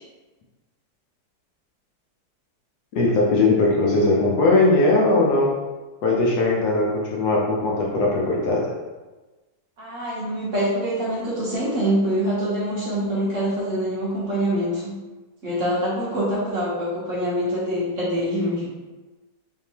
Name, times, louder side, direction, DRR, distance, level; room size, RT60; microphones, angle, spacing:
voice 1, 2.9-5.6 6.0-8.7, left 2 dB, 65° left, -3 dB, 1.2 m, -19 dB
voice 2, 9.8-15.0 15.4-18.7, equal, 50° right, -7 dB, 1.2 m, -25 dB
3.6 x 3.5 x 2.8 m, 1.2 s
omnidirectional pair, 2.0 m